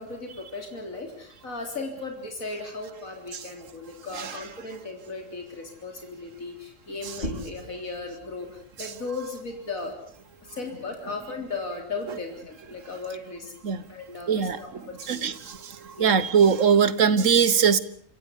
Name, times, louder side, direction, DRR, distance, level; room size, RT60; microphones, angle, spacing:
voice 1, 0.0-9.9 10.5-13.5 13.9-15.3 16.0-16.2, left 3 dB, 80° left, 3 dB, 4.1 m, -36 dB
sound 1, 7.0-12.3, left 1 dB, 40° left, 4.4 m, -42 dB
voice 2, 14.3-14.6 15.1-15.6 16.0-17.8, right 7 dB, 65° right, 16 dB, 1.5 m, -20 dB
27.5 x 15.5 x 8.3 m, 0.62 s
omnidirectional pair, 1.4 m